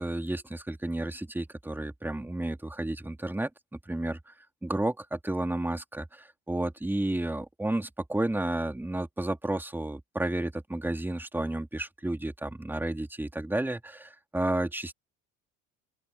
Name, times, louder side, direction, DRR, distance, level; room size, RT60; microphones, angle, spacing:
voice 1, 0.0-4.3 4.6-14.9, right 1 dB, 5° right, 3.3 m, -32 dB
open air
cardioid pair, 120°, 30 cm